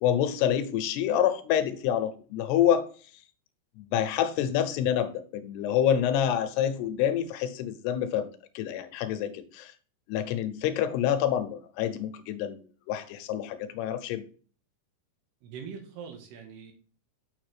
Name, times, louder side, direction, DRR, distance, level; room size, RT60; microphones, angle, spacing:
voice 1, 0.0-2.9 3.8-8.3 8.6-9.7 10.1-12.6 12.9-14.2, left 10 dB, 80° left, 2.7 m, -27 dB
voice 2, 15.4-16.7, right 6 dB, 80° right, 3.3 m, -42 dB
6.7 x 6.7 x 3.2 m
omnidirectional pair, 4.8 m